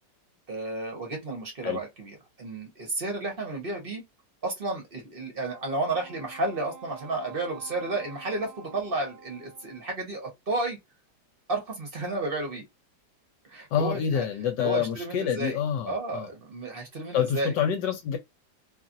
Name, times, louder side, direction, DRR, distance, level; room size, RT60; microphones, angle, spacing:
voice 1, 0.5-4.0 4.4-10.8 11.5-12.6 13.5-14.2 14.6-15.6 15.9-17.5, right 2 dB, 35° right, 1.0 m, -32 dB
Wind instrument woodwind instrument, 5.5-10.0, right 6 dB, 90° right, 0.5 m, -48 dB
voice 2, 13.7-16.3 17.1-18.2, left 8 dB, 75° left, 1.2 m, -27 dB
2.9 x 2.4 x 2.5 m
omnidirectional pair, 2.0 m